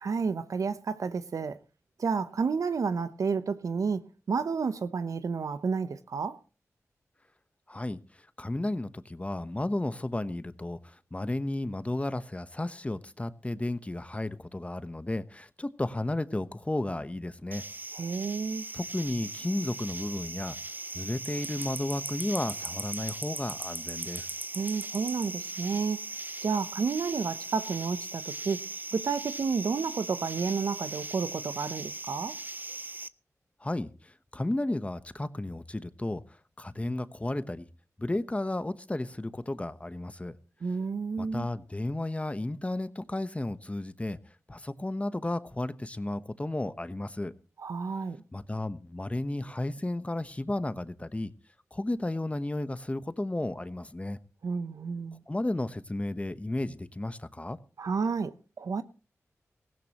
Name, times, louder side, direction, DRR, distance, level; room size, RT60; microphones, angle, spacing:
voice 1, 0.0-1.6 2.0-6.4 17.9-18.7 24.5-26.0 26.4-28.7 28.9-32.4 40.6-41.5 47.6-48.2 54.4-55.2 57.8-58.8, right 5 dB, 80° right, 0.8 m, -31 dB
voice 2, 7.7-8.0 8.4-17.6 18.7-20.6 20.9-24.3 33.6-36.2 36.6-37.7 38.0-40.3 41.2-44.2 44.5-47.3 48.3-51.3 51.7-54.2 55.3-57.6, left 1 dB, 25° left, 1.1 m, -33 dB
sound 1, 17.5-33.1, right 2 dB, 35° right, 0.7 m, -39 dB
17.5 x 16.0 x 3.0 m
cardioid pair, 45°, 6 cm